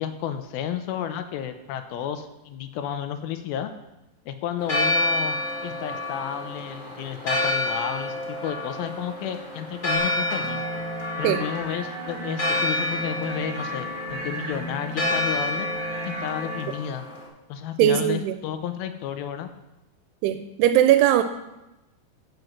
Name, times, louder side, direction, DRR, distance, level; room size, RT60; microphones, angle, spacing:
voice 1, 0.0-3.7 4.3-5.4 5.6-10.6 11.2-15.7 16.0-17.1 17.5-19.5, left 9 dB, 80° left, 8 dB, 2.4 m, -32 dB
Church bell, 4.6-17.3, left 2 dB, 20° left, 1.2 m, -29 dB
sound 1, 9.9-16.6, right 2 dB, 55° right, 1.9 m, -35 dB
voice 2, 17.8-18.4 20.2-21.2, right 11 dB, 85° right, 9 dB, 2.6 m, -19 dB
7.8 x 7.8 x 5.9 m, 0.96 s
omnidirectional pair, 4.7 m